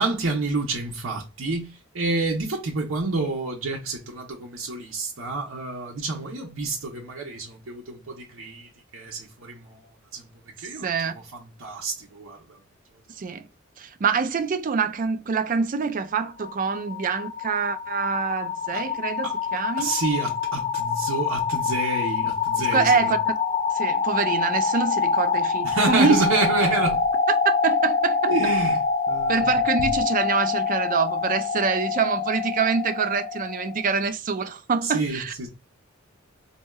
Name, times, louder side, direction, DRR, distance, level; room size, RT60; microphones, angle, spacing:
voice 1, 0.0-10.3 10.6-12.6 18.7-18.8 19.2-19.4 19.8-23.1 25.6-27.1 28.3-28.8 29.1-29.5 34.8-35.5, right 3 dB, 80° right, 0.8 m, -29 dB
voice 2, 10.8-11.1 13.2-13.5 13.8-19.9 22.7-23.3 23.7-26.2 27.6-28.3 29.3-35.5, right 5 dB, 40° right, 0.4 m, -25 dB
sound 1, 16.0-33.9, left 5 dB, 35° left, 0.4 m, -26 dB
4.2 x 2.7 x 2.3 m
head